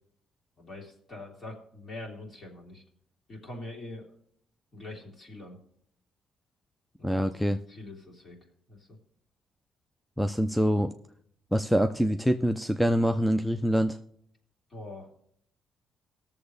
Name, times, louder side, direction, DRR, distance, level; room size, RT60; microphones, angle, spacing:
voice 1, 0.6-2.8 3.3-4.1 4.7-5.6 7.0-7.2 7.7-8.4 8.7-9.0 14.7-15.1, left 2 dB, 40° left, -1 dB, 3.3 m, -43 dB
voice 2, 7.0-7.6 10.2-10.9 11.5-14.0, equal, ahead, 8 dB, 0.5 m, -25 dB
19.0 x 7.1 x 3.3 m, 0.67 s
cardioid pair, 90°, 0 cm